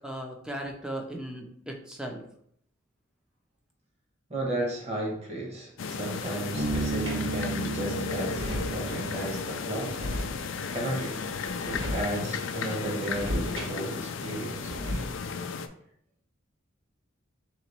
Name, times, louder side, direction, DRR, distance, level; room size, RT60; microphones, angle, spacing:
voice 1, 0.0-2.2, right 1 dB, 5° right, 0.6 m, -37 dB
voice 2, 4.3-10.0 10.7-11.2 11.6-14.7, right 1 dB, 35° right, 1.2 m, -34 dB
sound 1, 5.8-15.7, left 5 dB, 70° left, 0.4 m, -34 dB
sound 2, 6.3-7.3 7.8-7.9 8.1-9.0 9.7-10.7 11.3-12.3 12.6-14.1 14.3-15.4, left 1 dB, 65° right, 1.7 m, -36 dB
Bass guitar, 6.6-10.0, right 3 dB, 85° right, 1.0 m, -34 dB
3.7 x 3.0 x 4.3 m
head